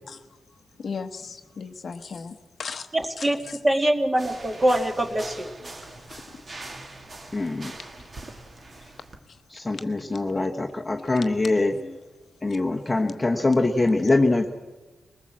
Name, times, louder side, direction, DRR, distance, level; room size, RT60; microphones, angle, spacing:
voice 1, 0.8-2.9 3.2-3.6 6.1-6.4 9.3-9.4 9.7-10.2, left 5 dB, 45° left, 8 dB, 1.0 m, -37 dB
voice 2, 2.9-3.4 3.6-5.5, right 1 dB, 20° right, 5 dB, 2.0 m, -23 dB
sound 1, 4.2-9.2, right 2 dB, 35° right, 2.2 m, -42 dB
voice 3, 7.3-7.7 9.5-11.8 12.4-14.5, left 2 dB, 15° left, 2 dB, 1.2 m, -23 dB
22.0 x 20.0 x 7.5 m, 1.2 s
wide cardioid pair, 150°, 0 cm